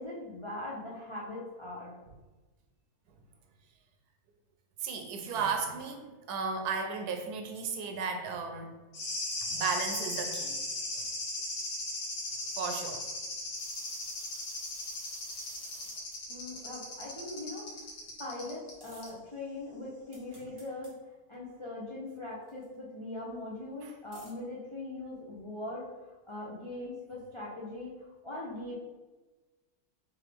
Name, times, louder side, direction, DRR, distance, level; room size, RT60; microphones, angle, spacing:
voice 1, 0.0-1.9 16.3-17.8 18.2-20.9 21.3-25.9 26.3-28.7, left 2 dB, 45° left, -6 dB, 0.4 m, -41 dB
voice 2, 4.8-8.7 9.5-10.6 11.0-11.1 12.6-13.0 23.8-23.9, right 5 dB, 90° right, 4 dB, 1.1 m, -34 dB
sound 1, 8.9-18.7 19.0-19.1, left 2 dB, 70° left, 1.5 m, -37 dB
sound 2, 13.6-16.2 18.8-19.1 20.1-20.9 22.5-22.6 24.1-24.3, equal, 25° right, 1.1 m, -52 dB
3.5 x 3.5 x 3.4 m, 1.2 s
omnidirectional pair, 1.6 m